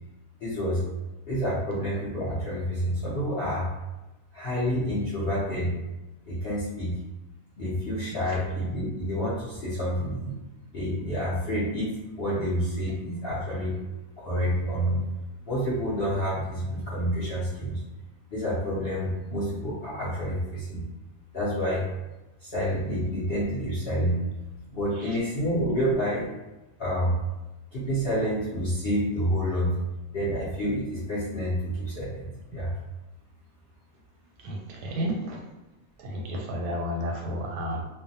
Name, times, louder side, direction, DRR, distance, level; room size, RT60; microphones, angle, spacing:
voice 1, 0.4-0.8 1.3-3.7 4.3-5.7 6.3-6.9 7.6-10.4 10.7-11.9 12.2-13.8 14.2-15.0 15.5-17.8 18.3-20.8 21.3-21.8 22.4-24.2 24.7-26.3 26.8-27.2 27.7-29.7 30.1-32.7, equal, 60° left, -9 dB, 0.6 m, -28 dB
voice 2, 34.4-35.4 36.0-37.8, equal, 90° right, -1 dB, 1.2 m, -32 dB
2.6 x 2.1 x 2.6 m, 1.0 s
omnidirectional pair, 1.7 m